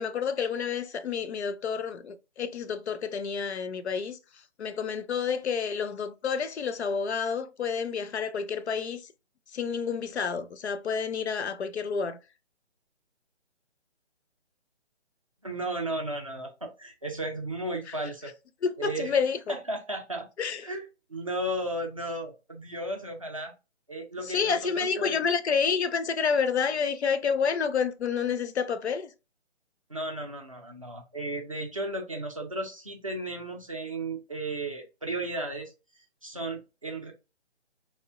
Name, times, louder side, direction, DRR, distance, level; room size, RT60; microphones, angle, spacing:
voice 1, 0.0-9.1 9.5-12.2 17.9-18.0 18.6-19.5 20.4-20.7 24.2-29.1, left 6 dB, 70° left, 0.5 m, -29 dB
voice 2, 15.4-18.3 18.8-19.1 19.5-20.3 20.6-23.5 23.9-25.2 29.9-35.7 36.2-37.1, right 1 dB, 30° right, 0.4 m, -34 dB
3.2 x 2.1 x 2.4 m
figure-of-eight pair, 150°, 35 cm